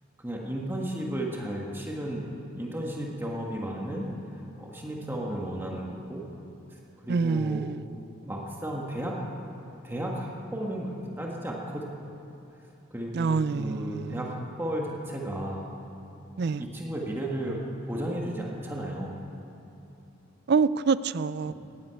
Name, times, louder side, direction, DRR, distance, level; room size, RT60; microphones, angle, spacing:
voice 1, 0.2-4.1 4.6-6.2 6.7-7.6 8.2-9.2 9.8-11.9 12.9-15.7 16.4-19.2 21.5-21.6, right 1 dB, 10° right, -2 dB, 1.5 m, -34 dB
voice 2, 7.1-7.9 13.1-14.4 16.4-16.6 20.5-21.5, right 5 dB, 50° right, 16 dB, 0.4 m, -26 dB
15.0 x 10.5 x 9.1 m, 2.9 s
head